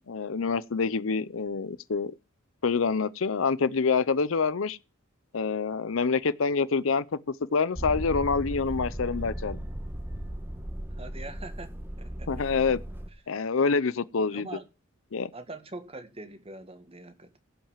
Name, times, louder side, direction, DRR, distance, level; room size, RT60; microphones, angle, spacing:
voice 1, 0.1-2.1 2.6-4.8 5.3-7.0 7.5-9.6 12.3-12.8 13.3-14.5 15.1-15.3, left 5 dB, 70° left, 0.6 m, -26 dB
Motor vehicle (road), 7.8-13.1, equal, 10° right, 1.4 m, -36 dB
voice 2, 11.0-11.7 12.0-12.3 14.3-14.7 15.3-17.4, right 2 dB, 30° right, 1.7 m, -43 dB
16.5 x 5.6 x 7.3 m
head